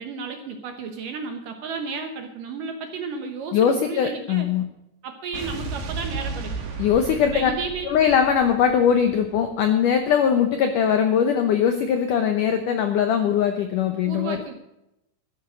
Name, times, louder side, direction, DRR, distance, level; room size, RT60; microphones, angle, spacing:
voice 1, 0.0-4.5 5.0-6.7 7.2-7.9 14.0-14.5, right 4 dB, 70° right, 5 dB, 2.2 m, -33 dB
voice 2, 3.5-4.6 6.8-7.5 7.9-14.4, left 8 dB, 80° left, 7 dB, 1.9 m, -21 dB
Explosion, 5.3-9.7, right 4 dB, 90° right, 4.5 m, -34 dB
13.0 x 10.5 x 6.3 m, 0.86 s
omnidirectional pair, 5.1 m